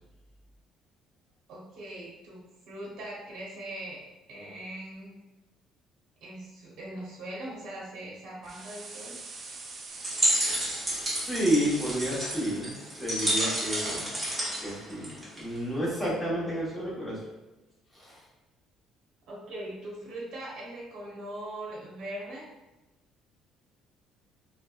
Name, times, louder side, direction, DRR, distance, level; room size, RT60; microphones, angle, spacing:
voice 1, 1.5-4.0 4.3-5.1 6.2-9.2 19.3-22.5, right 1 dB, 65° right, -4 dB, 0.7 m, -41 dB
sound 1, 8.4-12.6, right 3 dB, 40° right, 0.3 m, -44 dB
sound 2, 9.9-15.6, right 1 dB, 20° right, 0.9 m, -30 dB
voice 2, 10.9-12.7 13.0-14.1 14.6-17.2 17.9-18.2, equal, 10° left, -7 dB, 0.9 m, -30 dB
2.7 x 2.1 x 2.3 m, 1.0 s
cardioid pair, 120°, 0 cm